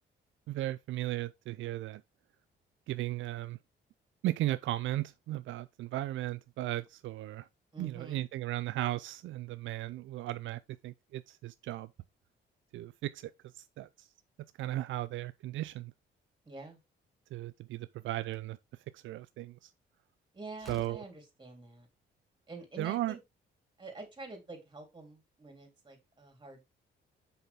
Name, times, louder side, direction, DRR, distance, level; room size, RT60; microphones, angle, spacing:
voice 1, 0.5-2.0 2.9-3.6 4.2-7.5 7.8-11.9 12.7-13.3 13.6-14.1 14.6-15.9 17.3-18.6 18.9-19.7 20.7-21.0 22.8-23.1, right 15 dB, 75° right, 0.4 m, -36 dB
voice 2, 7.7-8.3 16.5-16.8 20.3-21.9 22.5-23.2 23.8-26.6, right 3 dB, 25° right, 3.6 m, -47 dB
Slam, 18.2-18.6 20.1-20.2 20.6-21.1, left 1 dB, ahead, 1.9 m, -53 dB
5.9 x 5.6 x 3.5 m
cardioid pair, 90°, 20 cm